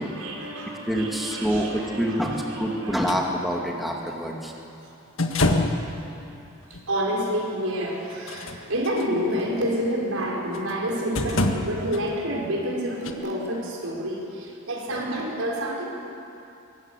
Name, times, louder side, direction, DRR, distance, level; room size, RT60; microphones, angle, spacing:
voice 1, 0.0-3.0 6.7-15.9, equal, 90° right, -2 dB, 5.1 m, -29 dB
voice 2, 0.9-4.5, equal, ahead, -1 dB, 2.1 m, -26 dB
sound 1, 3.1-3.2 5.2-5.9 6.7-6.8 8.1-9.1 10.5-10.8 11.2-12.0 13.0-13.1, left 2 dB, 75° left, 1.7 m, -25 dB
23.5 x 18.5 x 8.2 m, 2.7 s
head